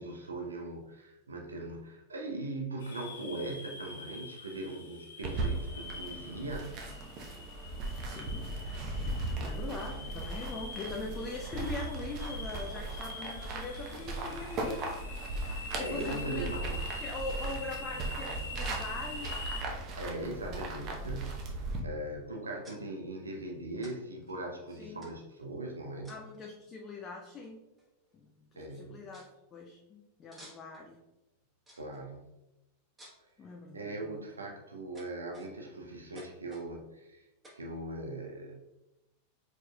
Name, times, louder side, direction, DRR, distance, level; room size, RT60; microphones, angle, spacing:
voice 1, 0.0-6.7 9.4-10.2 15.8-17.0 20.0-21.5 21.8-26.1 28.6-29.0 31.8-32.4 33.7-37.3 37.5-38.5, right 2 dB, 75° right, 1 dB, 0.7 m, -40 dB
sound 1, 2.8-19.6, left 3 dB, 65° left, 0.9 m, -45 dB
sound 2, 5.2-21.8, right 2 dB, 40° right, 0.8 m, -38 dB
voice 2, 8.0-8.5 9.4-15.0 15.8-16.5 17.0-19.4 20.4-20.6 24.8-25.0 26.1-27.7 28.1-31.0 33.4-34.2, left 3 dB, 25° left, 0 dB, 0.6 m, -42 dB
sound 3, 21.6-22.0 22.6-22.8 23.8-23.9 24.2-24.3 25.0-25.4 26.0-26.4 27.4-27.5 27.8-28.2 28.5-28.6 29.1-29.3 30.3-30.9 31.7-32.0 33.0-33.3 34.0-34.4 34.9-35.7 36.1-36.7 37.4-37.6, equal, 15° right, 1.3 m, -54 dB
4.6 x 4.5 x 2.3 m, 0.95 s
figure-of-eight pair, 90°, 0 cm